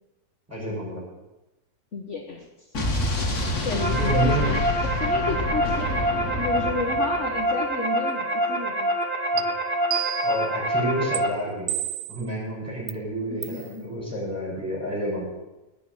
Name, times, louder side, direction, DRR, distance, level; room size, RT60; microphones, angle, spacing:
voice 1, 0.5-1.0 3.9-4.5 9.3-9.5 10.2-11.8 12.1-15.2, right 1 dB, 10° right, -4 dB, 6.6 m, -29 dB
voice 2, 1.9-2.7 3.6-5.9 6.4-8.9 13.3-14.0, left 3 dB, 55° left, 1 dB, 1.5 m, -32 dB
Explosion, 2.7-7.5, left 2 dB, 80° left, 2.6 m, -28 dB
sound 1, 3.4-11.3, right 1 dB, 35° right, 1.9 m, -26 dB
sound 2, 9.4-9.5 9.9-10.5 11.1-11.2 11.7-12.2 12.9-13.0 13.4-13.6, right 13 dB, 65° right, 0.9 m, -29 dB
18.0 x 6.2 x 9.7 m, 1.0 s
omnidirectional pair, 1.6 m